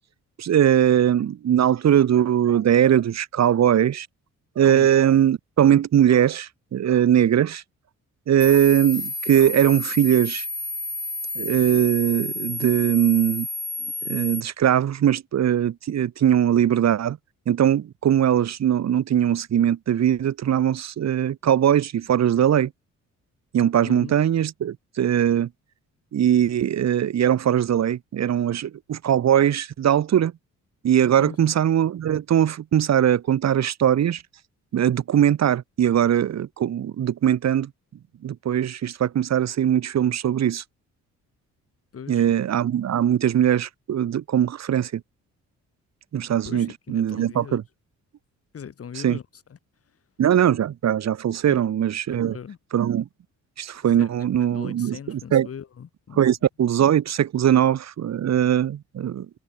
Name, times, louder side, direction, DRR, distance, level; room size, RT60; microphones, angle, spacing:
voice 1, 0.4-4.1 4.6-7.6 8.3-10.5 11.4-13.5 14.0-17.2 17.5-22.7 23.5-25.5 26.1-30.3 30.8-34.2 34.7-37.7 38.2-40.6 42.1-45.0 46.1-47.6 48.9-49.2 50.2-52.4 52.7-53.1 53.6-55.5 56.1-59.3, right 10 dB, 60° right, 2.5 m, -20 dB
sound 1, 8.4-14.4, left 2 dB, 15° left, 2.1 m, -31 dB
voice 2, 23.8-24.2 31.2-31.4 41.9-42.2 46.4-47.6 48.5-49.2 51.5-51.6 52.1-52.6 54.0-54.1 54.4-56.2, left 7 dB, 50° left, 5.2 m, -39 dB
cardioid pair, 90°, 30 cm